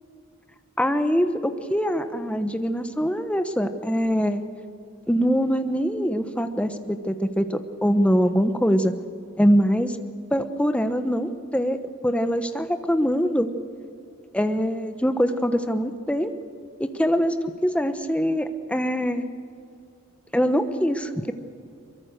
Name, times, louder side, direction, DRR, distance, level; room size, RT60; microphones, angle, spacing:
voice 1, 0.8-4.4 5.1-8.9 9.4-10.0 10.3-11.8 12.0-13.5 14.3-16.3 16.8-19.2 20.3-21.3, equal, 5° left, 8 dB, 1.1 m, -23 dB
23.5 x 22.5 x 6.7 m, 2.5 s
head